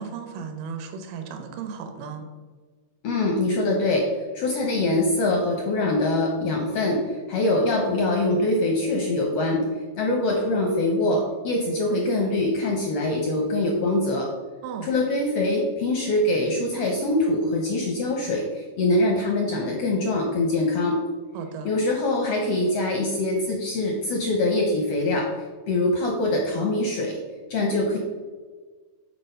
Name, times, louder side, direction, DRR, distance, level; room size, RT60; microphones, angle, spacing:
voice 1, 0.0-2.3 14.6-14.9 21.3-21.7, right 6 dB, 80° right, 6 dB, 2.3 m, -35 dB
voice 2, 3.0-9.6 10.0-14.3 14.8-21.0 21.6-25.3 25.7-27.2 27.5-28.0, left 2 dB, 80° left, 1 dB, 1.3 m, -23 dB
6.1 x 4.3 x 5.5 m, 1.4 s
omnidirectional pair, 3.8 m